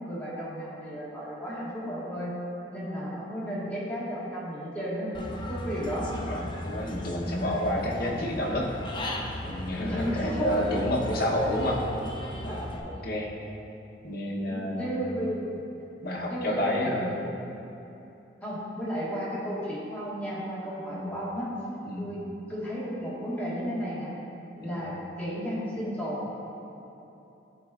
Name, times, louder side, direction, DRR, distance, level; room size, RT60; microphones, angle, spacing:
voice 1, 0.0-2.3 2.6-6.1 7.7-7.9 9.8-10.5 11.5-11.6 12.5-12.6 14.4-15.5 16.3-17.3 18.4-21.5 22.0-22.2 22.5-24.1 24.6-26.2, equal, 10° left, -9 dB, 1.5 m, -33 dB
Human voice / Bird, 5.1-12.8, left 1 dB, 25° left, 0.5 m, -37 dB
voice 2, 6.6-8.7 9.4-11.8 12.4-13.3 14.0-14.9 16.0-17.1 20.9-21.1 21.8-22.0 24.6-24.8, left 1 dB, 60° left, -2 dB, 0.9 m, -30 dB
11.5 x 4.2 x 2.4 m, 2.9 s
head